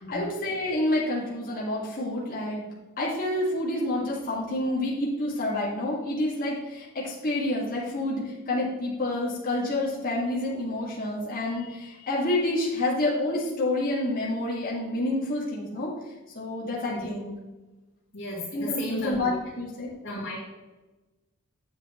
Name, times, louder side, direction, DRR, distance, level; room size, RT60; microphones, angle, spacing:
voice 1, 0.0-2.6 3.0-15.9 16.3-17.3 18.5-19.9, left 1 dB, 40° left, -5 dB, 2.2 m, -28 dB
voice 2, 18.1-19.3 20.0-20.4, left 1 dB, 60° left, -11 dB, 3.2 m, -34 dB
9.6 x 8.0 x 3.2 m, 1.1 s
head